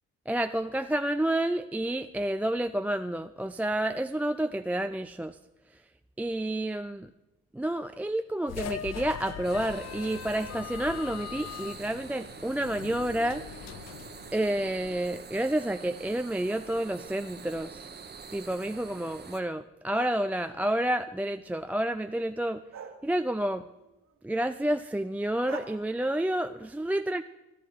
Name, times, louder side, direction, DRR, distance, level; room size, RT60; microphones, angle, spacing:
voice 1, 0.3-5.4 6.2-7.1 7.5-13.4 14.3-17.9 18.3-22.6 23.0-23.7 24.2-27.2, right 1 dB, 5° right, 9 dB, 0.3 m, -29 dB
sound 1, 8.5-15.0, left 11 dB, 60° left, 0.5 m, -41 dB
sound 2, 9.4-19.4, right 5 dB, 35° right, 1.1 m, -46 dB
sound 3, 19.9-21.4 22.7-24.1 25.5-25.6, right 7 dB, 65° right, 1.6 m, -46 dB
13.5 x 11.0 x 4.7 m, 0.96 s
supercardioid pair, 70°, 30 cm